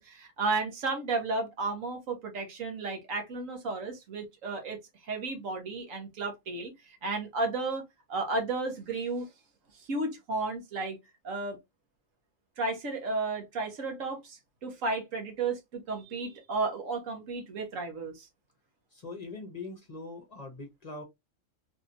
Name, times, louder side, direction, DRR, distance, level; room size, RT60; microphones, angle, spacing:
voice 1, 0.0-9.3 9.7-11.0 11.2-11.6 12.6-18.3, right 3 dB, 75° right, 1.5 m, -33 dB
voice 2, 18.9-21.0, left 3 dB, 35° left, 0.8 m, -42 dB
3.3 x 2.8 x 2.5 m
omnidirectional pair, 1.4 m